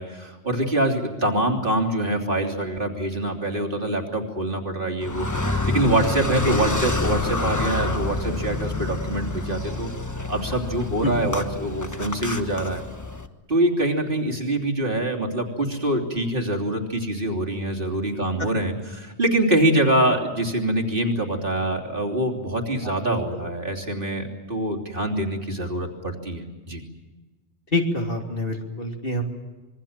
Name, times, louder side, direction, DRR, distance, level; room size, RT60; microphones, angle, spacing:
voice 1, 0.0-9.9 10.3-12.8 13.5-26.8, right 1 dB, 50° right, 0 dB, 3.3 m, -25 dB
Car, 5.0-13.3, left 2 dB, 15° left, 1.3 m, -28 dB
voice 2, 27.7-29.2, left 1 dB, 50° left, 2 dB, 3.4 m, -26 dB
26.5 x 23.0 x 7.3 m, 1.2 s
omnidirectional pair, 1.2 m